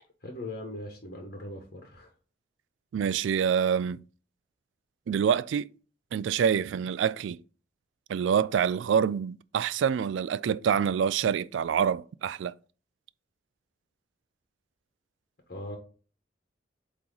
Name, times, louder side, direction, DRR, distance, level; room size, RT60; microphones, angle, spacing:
voice 1, 0.2-2.1 15.5-15.8, left 1 dB, 55° left, 1.2 m, -40 dB
voice 2, 2.9-4.0 5.1-5.7 6.1-7.4 8.1-12.5, right 7 dB, 80° right, 0.3 m, -26 dB
8.4 x 3.0 x 3.9 m
head